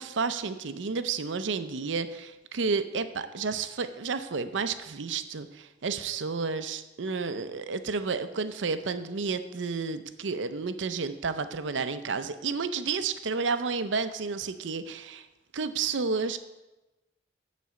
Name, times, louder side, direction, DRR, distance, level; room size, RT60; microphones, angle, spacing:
voice 1, 0.0-15.3 15.5-16.4, right 4 dB, 80° right, 11 dB, 0.6 m, -31 dB
11.0 x 4.2 x 6.9 m, 1.1 s
head